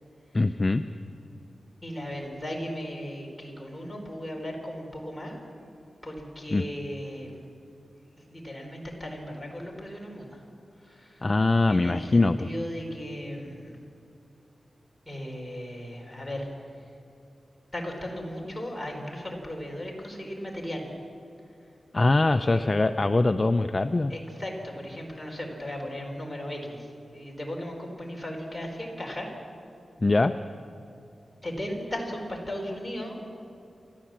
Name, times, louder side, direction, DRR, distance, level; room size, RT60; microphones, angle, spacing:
voice 1, 0.3-0.8 6.5-6.6 11.2-12.5 21.9-24.1 30.0-30.3, left 2 dB, 30° left, 9 dB, 0.5 m, -22 dB
voice 2, 1.8-5.4 6.0-7.4 8.2-10.4 10.8-11.3 11.7-13.7 15.1-16.5 17.7-20.9 22.4-22.6 24.1-29.3 31.4-33.2, equal, 5° left, -1 dB, 4.1 m, -36 dB
28.0 x 12.5 x 7.4 m, 2.6 s
wide cardioid pair, 120°, 0 cm